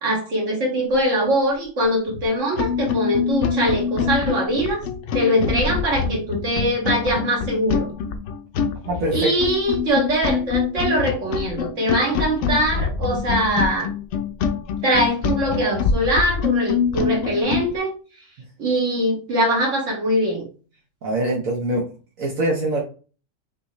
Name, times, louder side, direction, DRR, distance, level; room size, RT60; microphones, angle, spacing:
voice 1, 0.0-4.8 5.1-7.9 9.1-13.9 14.8-17.9 18.6-20.5, equal, 65° right, -2 dB, 2.0 m, -22 dB
sound 1, 2.1-2.2 2.5-17.7, left 6 dB, 65° left, 0.9 m, -24 dB
voice 2, 8.9-9.3 21.0-21.9 22.2-22.8, right 1 dB, 80° right, -2 dB, 1.4 m, -23 dB
6.0 x 2.8 x 3.0 m, 0.37 s
omnidirectional pair, 1.4 m